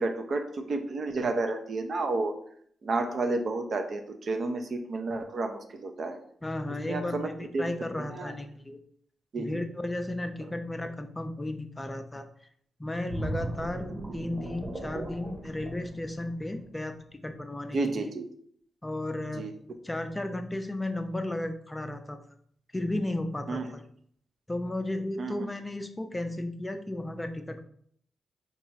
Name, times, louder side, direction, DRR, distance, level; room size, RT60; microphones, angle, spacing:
voice 1, 0.0-2.3 2.8-6.2 6.8-7.3 7.5-7.6 8.0-8.3 9.3-9.6 17.7-18.3 19.3-19.5 23.5-23.7 25.2-25.5, right 3 dB, 60° right, 6 dB, 0.5 m, -31 dB
voice 2, 6.4-8.8 9.4-12.3 12.8-17.0 17.2-18.1 18.8-19.4 19.8-22.2 22.7-23.8 24.5-27.6, left 1 dB, 20° left, 7 dB, 0.4 m, -34 dB
sound 1, 13.1-16.7 17.1-17.3, right 2 dB, 35° right, 1.0 m, -37 dB
2.8 x 2.3 x 4.1 m, 0.64 s
cardioid pair, 60°, 0 cm